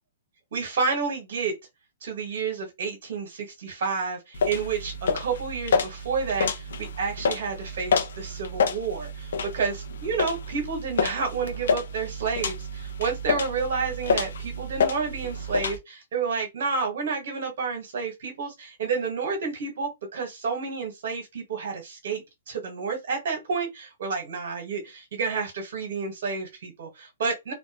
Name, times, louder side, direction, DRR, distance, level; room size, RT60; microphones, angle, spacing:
voice 1, 0.5-1.5 2.0-27.5, right 5 dB, 65° right, 1.5 m, -30 dB
sound 1, 4.3-15.8, left 4 dB, 75° left, 0.8 m, -28 dB
3.2 x 2.4 x 2.9 m
hypercardioid pair, 135°, 0 cm